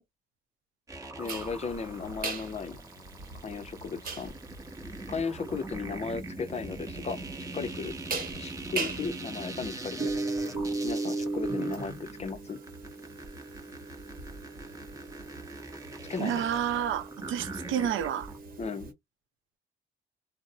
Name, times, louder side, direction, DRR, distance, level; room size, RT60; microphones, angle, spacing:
sound 1, 0.9-18.4, right 2 dB, 15° right, 0.9 m, -42 dB
voice 1, 1.2-2.8 3.4-4.3 5.1-7.2 7.5-7.9 8.4-10.1 10.8-12.6 16.1-16.4 18.6-18.9, left 5 dB, 35° left, 0.5 m, -35 dB
sound 2, 1.3-18.9, right 3 dB, 45° right, 1.0 m, -38 dB
voice 2, 16.2-18.3, right 9 dB, 80° right, 0.5 m, -30 dB
2.6 x 2.0 x 2.6 m
cardioid pair, 90°, 20 cm